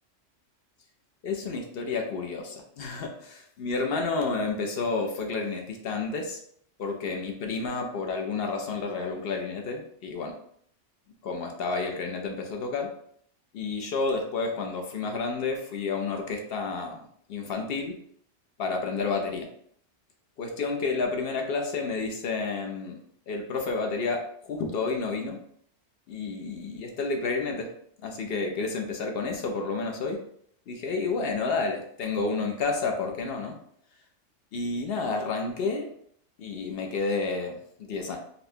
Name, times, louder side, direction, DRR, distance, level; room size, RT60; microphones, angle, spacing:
voice 1, 1.2-6.4 6.8-10.3 11.2-12.9 13.5-17.0 17.3-17.9 18.6-19.5 20.4-23.0 23.3-25.4 26.1-27.7 28.0-30.2 30.7-33.5 34.5-35.9 36.4-38.2, left 4 dB, 65° left, 3 dB, 0.7 m, -30 dB
4.1 x 2.1 x 2.7 m, 0.65 s
omnidirectional pair, 1.3 m